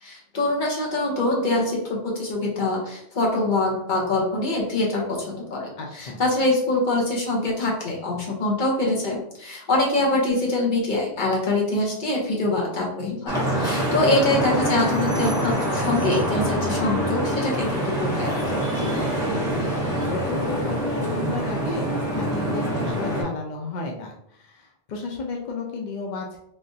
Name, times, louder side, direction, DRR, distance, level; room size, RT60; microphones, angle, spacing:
voice 1, 0.0-18.6, left 2 dB, 45° left, -1 dB, 0.9 m, -24 dB
voice 2, 5.8-6.2 18.6-19.0 20.1-26.4, left 3 dB, 65° left, 1 dB, 0.4 m, -32 dB
Vehicle horn car horn honking / Traffic noise roadway noise, 13.3-23.2, right 1 dB, 5° right, 1.1 m, -25 dB
3.6 x 2.4 x 2.6 m, 0.74 s
omnidirectional pair, 1.3 m